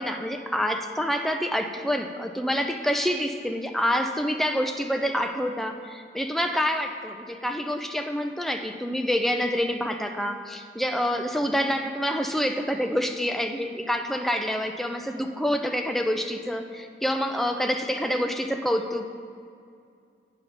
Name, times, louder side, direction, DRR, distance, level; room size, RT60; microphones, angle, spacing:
voice 1, 0.0-19.1, equal, ahead, 5 dB, 0.3 m, -27 dB
8.9 x 5.7 x 3.9 m, 2.4 s
head